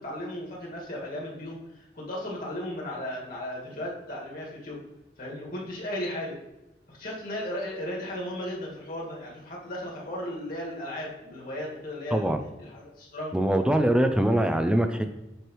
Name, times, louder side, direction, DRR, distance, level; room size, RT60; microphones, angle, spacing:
voice 1, 0.0-4.8 5.2-6.4 6.9-12.3 12.6-13.4, left 1 dB, 55° left, -3 dB, 1.9 m, -35 dB
voice 2, 12.1-12.4 13.3-15.1, right 1 dB, 5° right, 7 dB, 0.3 m, -23 dB
7.8 x 4.6 x 3.1 m, 0.94 s
head